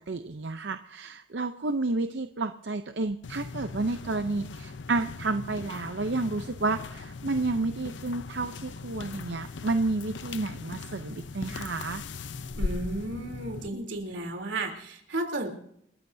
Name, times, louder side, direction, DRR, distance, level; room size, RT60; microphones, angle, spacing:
voice 1, 0.1-12.0, right 3 dB, 70° right, 8 dB, 0.7 m, -31 dB
sound 1, 3.2-13.7, left 3 dB, 80° left, 0.6 m, -39 dB
voice 2, 12.5-15.5, right 2 dB, 90° right, 3 dB, 3.4 m, -33 dB
29.0 x 14.0 x 2.7 m, 0.73 s
head